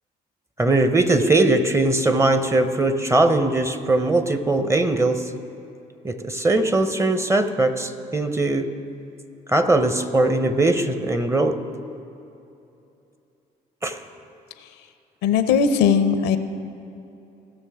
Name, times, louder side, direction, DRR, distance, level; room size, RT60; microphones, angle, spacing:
voice 1, 0.6-5.3 6.0-8.8 9.5-11.6 13.8-14.0, right 2 dB, 15° right, 9 dB, 0.9 m, -20 dB
voice 2, 15.2-16.4, left 6 dB, 85° left, 10 dB, 0.6 m, -18 dB
17.5 x 6.4 x 3.6 m, 2.8 s
supercardioid pair, 60°, 18 cm